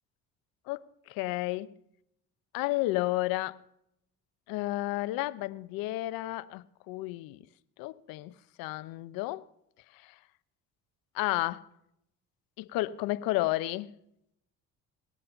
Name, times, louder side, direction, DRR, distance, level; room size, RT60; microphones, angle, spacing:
voice 1, 0.7-1.7 2.5-3.6 4.5-7.4 7.8-9.5 11.1-11.7 12.6-14.0, left 18 dB, 85° left, 0.7 m, -32 dB
20.0 x 8.5 x 6.8 m
supercardioid pair, 80°, 34 cm